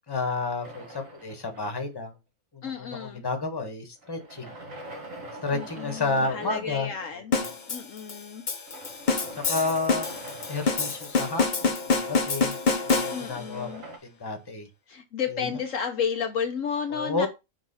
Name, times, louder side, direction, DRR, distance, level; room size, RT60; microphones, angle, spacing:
voice 1, 0.1-2.1 2.5-4.5 5.4-6.9 7.3-7.4 9.5-10.2 10.5-12.6 12.9-14.7 15.3-15.5 16.9-17.3, left 3 dB, 15° left, 1.2 m, -31 dB
sound 1, 0.6-2.1 4.0-7.2 8.7-11.9 13.4-14.0, right 1 dB, 60° right, 2.1 m, -43 dB
voice 2, 2.6-3.2 5.5-7.3 7.7-8.4 13.1-13.8 14.9-17.3, left 7 dB, 65° left, 1.1 m, -32 dB
sound 2, 7.3-13.5, left 4 dB, 35° left, 0.9 m, -27 dB
6.2 x 3.7 x 5.4 m
omnidirectional pair, 1.5 m